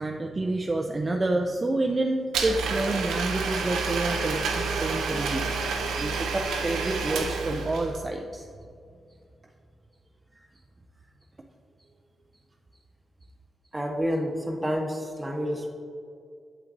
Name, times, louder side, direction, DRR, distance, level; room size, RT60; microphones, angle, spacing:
voice 1, 0.0-5.5 6.0-8.5, right 2 dB, 35° right, 2 dB, 0.4 m, -28 dB
Domestic sounds home sounds, 2.3-8.0, right 4 dB, 90° right, 0.6 m, -29 dB
voice 2, 13.7-15.7, equal, 15° right, 2 dB, 1.0 m, -29 dB
7.1 x 5.8 x 2.6 m, 2.3 s
cardioid pair, 60°, 0 cm